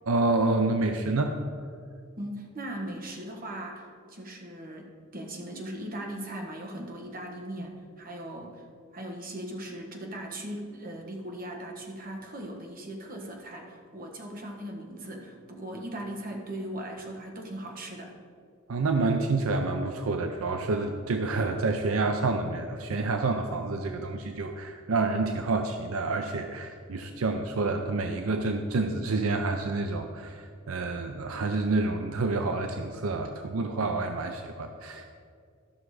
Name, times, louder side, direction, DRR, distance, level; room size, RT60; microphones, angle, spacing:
voice 1, 0.1-1.3 18.7-35.1, right 3 dB, 75° right, 5 dB, 0.6 m, -28 dB
voice 2, 2.2-8.6 8.9-18.1, right 1 dB, 40° right, 1 dB, 1.4 m, -39 dB
12.5 x 5.9 x 4.8 m, 2.2 s
head